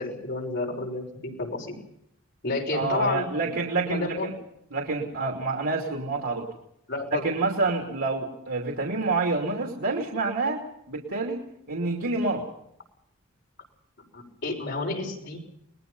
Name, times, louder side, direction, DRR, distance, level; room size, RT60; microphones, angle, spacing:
voice 1, 0.0-1.8 2.4-3.6 3.9-4.3 6.9-7.3 14.1-15.4, left 3 dB, 55° left, 1 dB, 6.1 m, -30 dB
voice 2, 2.7-4.3 4.7-6.5 7.1-11.4 11.7-12.5, right 3 dB, 75° right, 1 dB, 2.9 m, -28 dB
29.0 x 20.0 x 5.5 m, 0.76 s
head